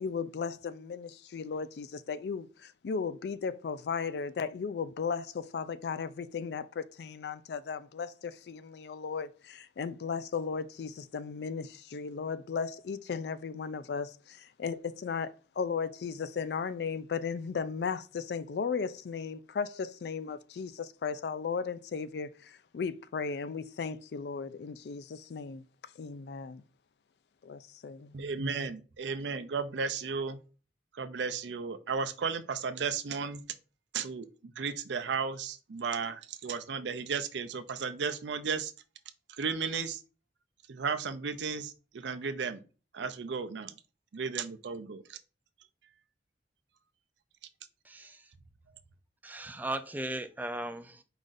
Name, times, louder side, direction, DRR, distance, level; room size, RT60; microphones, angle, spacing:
voice 1, 0.0-25.6 26.0-26.6 27.4-28.2, left 5 dB, 65° left, 0.4 m, -36 dB
voice 2, 28.1-30.4 31.0-33.4 33.9-38.7 39.4-40.0 40.7-42.6 42.9-43.7 44.1-45.2, right 5 dB, 80° right, 0.5 m, -34 dB
voice 3, 47.9-48.2 49.2-51.0, right 1 dB, 10° right, 0.3 m, -37 dB
4.9 x 2.5 x 3.9 m
head